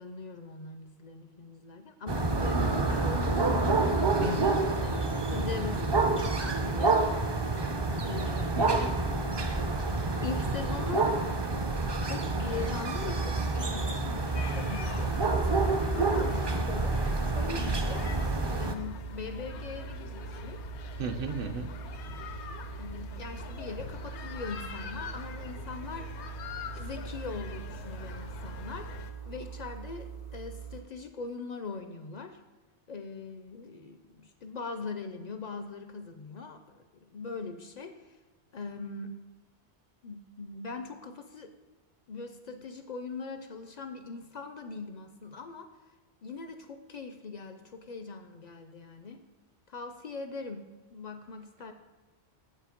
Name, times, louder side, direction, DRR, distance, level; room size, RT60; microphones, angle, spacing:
voice 1, 0.0-3.6 4.8-7.0 8.0-8.6 10.2-11.1 12.0-16.9 17.2-18.1 18.6-20.6 22.8-26.1 26.7-28.9 29.3-32.4 32.9-38.0 38.5-39.2 40.0-41.5 42.1-45.7 46.2-49.2 49.7-51.7, left 4 dB, 55° left, 7 dB, 0.5 m, -41 dB
sound 1, 2.1-18.7, right 3 dB, 35° right, 0.4 m, -28 dB
voice 2, 4.2-4.6 8.6-9.0 21.0-21.7, right 4 dB, 60° right, 8 dB, 0.8 m, -35 dB
sound 2, 14.4-29.1, left 7 dB, 80° left, 0.9 m, -44 dB
sound 3, 15.0-30.8, right 8 dB, 90° right, 2.3 m, -43 dB
7.4 x 5.5 x 5.1 m, 1.2 s
omnidirectional pair, 1.1 m